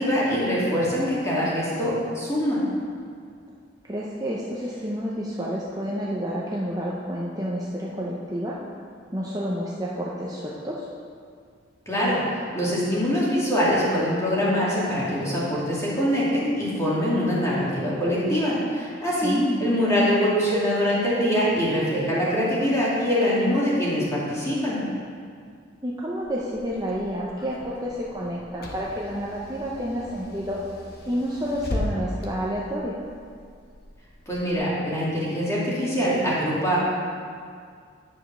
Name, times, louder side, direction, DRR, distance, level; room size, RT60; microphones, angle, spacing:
voice 1, 0.0-2.6 11.9-24.8 34.3-36.8, equal, 15° left, -7 dB, 2.2 m, -23 dB
voice 2, 3.8-8.6 9.1-10.9 19.2-19.7 25.8-30.6 31.0-33.0, equal, 20° right, -5 dB, 0.7 m, -29 dB
Car / Engine, 26.2-34.5, left 1 dB, 50° left, 1.0 m, -38 dB
9.6 x 5.1 x 6.1 m, 2.2 s
head